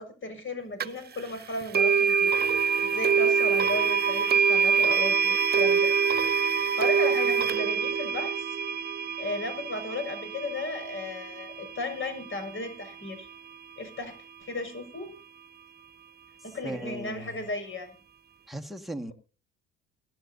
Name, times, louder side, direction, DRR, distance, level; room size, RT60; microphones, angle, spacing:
voice 1, 0.0-2.3 2.8-6.0 6.6-8.4 9.2-13.3 13.8-15.1 16.4-17.9, left 2 dB, 40° left, 6.6 m, -35 dB
sound 1, 0.8-0.9 1.7-12.7, right 6 dB, 30° right, 0.7 m, -25 dB
voice 2, 16.6-17.4 18.5-19.1, right 1 dB, ahead, 1.8 m, -37 dB
24.5 x 11.0 x 2.8 m
hypercardioid pair, 60°, 32 cm